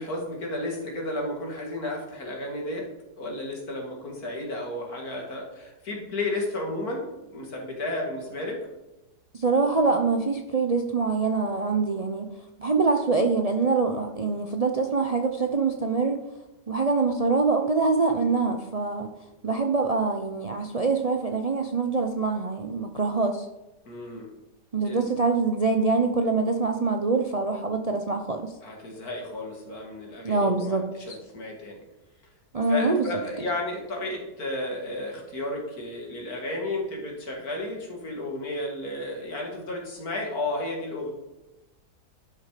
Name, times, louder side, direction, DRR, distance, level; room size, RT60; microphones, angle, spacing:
voice 1, 0.0-2.9 3.2-7.1 7.3-8.6 23.9-24.3 24.8-25.1 28.6-31.8 32.7-41.1, left 2 dB, 60° left, 0 dB, 2.7 m, -33 dB
voice 2, 9.4-12.3 12.6-16.2 16.7-19.1 19.4-23.4 24.7-28.5 30.2-31.2 32.5-33.0, right 4 dB, 60° right, 5 dB, 0.3 m, -24 dB
11.5 x 6.7 x 5.0 m, 0.99 s
omnidirectional pair, 1.8 m